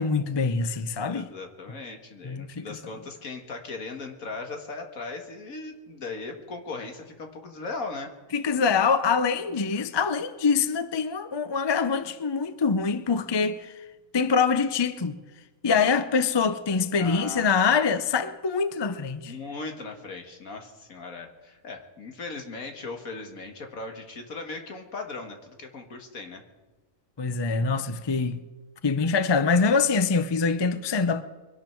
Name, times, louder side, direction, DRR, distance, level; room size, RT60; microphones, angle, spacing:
voice 1, 0.0-1.3 2.2-2.8 8.3-13.7 14.1-15.2 15.6-19.3 27.2-28.4 28.8-31.2, left 5 dB, 35° left, 0.4 m, -24 dB
voice 2, 1.1-8.1 17.0-17.5 19.3-26.4, left 3 dB, 70° left, 2.1 m, -38 dB
23.0 x 11.5 x 4.5 m
omnidirectional pair, 1.5 m